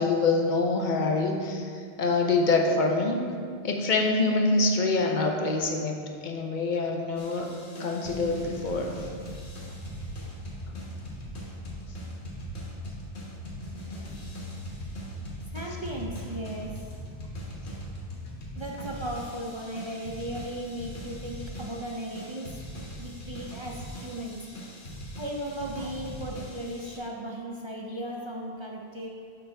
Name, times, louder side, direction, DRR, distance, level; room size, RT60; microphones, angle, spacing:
voice 1, 0.0-1.7 2.0-3.3 3.6-6.0 6.2-7.5 7.8-8.9, left 3 dB, 55° left, 2 dB, 0.7 m, -25 dB
sound 1, 7.2-27.0, equal, 80° left, 1.5 m, -40 dB
voice 2, 15.5-16.9 18.6-22.6 23.0-24.4 25.2-29.1, right 1 dB, 40° right, -1 dB, 0.4 m, -36 dB
6.9 x 5.3 x 3.3 m, 2.1 s
omnidirectional pair, 1.1 m